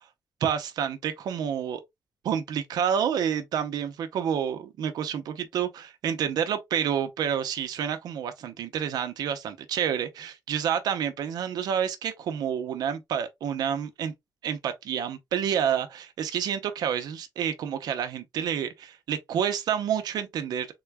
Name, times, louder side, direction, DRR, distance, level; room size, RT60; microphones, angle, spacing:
voice 1, 0.4-1.8 2.2-14.1 14.4-20.7, right 8 dB, 80° right, 0.7 m, -29 dB
3.7 x 2.3 x 3.3 m
wide cardioid pair, 180°, 7 cm